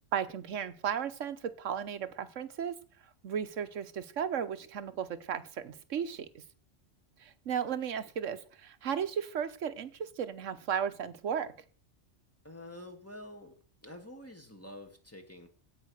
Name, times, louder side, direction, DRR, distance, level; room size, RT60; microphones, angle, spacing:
voice 1, 0.1-2.7 3.2-6.3 7.2-11.5, right 8 dB, 85° right, 12 dB, 1.3 m, -35 dB
voice 2, 12.4-13.5 13.8-15.5, left 1 dB, 10° left, 4 dB, 2.1 m, -47 dB
16.5 x 5.6 x 6.4 m, 0.42 s
omnidirectional pair, 1.3 m